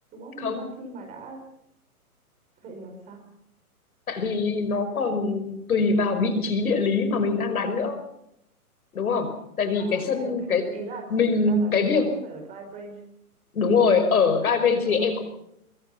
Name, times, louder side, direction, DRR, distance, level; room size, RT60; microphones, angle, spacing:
voice 1, 0.1-1.4 2.6-3.2 9.8-10.3 10.7-11.0 11.4-13.0 14.8-15.1, right 3 dB, 15° right, 3 dB, 4.8 m, -40 dB
voice 2, 4.1-8.0 8.9-10.7 11.1-12.1 13.5-15.2, left 4 dB, 70° left, 9 dB, 5.5 m, -23 dB
24.0 x 23.0 x 5.7 m, 0.77 s
hypercardioid pair, 160°, 45 cm